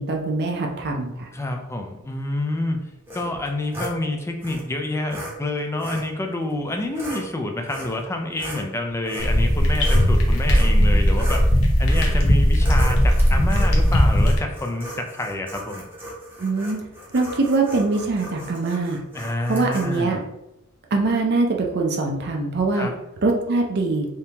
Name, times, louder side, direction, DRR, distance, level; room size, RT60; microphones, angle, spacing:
voice 1, 0.0-1.3 16.4-16.8 17.1-19.0 19.5-20.2 20.9-22.9 23.2-24.1, right 3 dB, 50° right, 1 dB, 0.5 m, -23 dB
voice 2, 1.3-11.4 11.8-15.8 19.1-20.2 22.7-23.0, left 2 dB, 15° left, 3 dB, 0.3 m, -28 dB
sound 1, 3.1-4.0 4.4-4.6 5.1-5.3 5.8-6.1 6.8-7.2 7.7-8.0 8.3-10.1 10.5-10.8 11.1-11.5 11.9-12.2 12.6-20.0, equal, 10° right, 0.9 m, -37 dB
sound 2, 9.2-14.4, equal, 65° left, 0.8 m, -17 dB
3.5 x 2.7 x 2.8 m, 0.90 s
head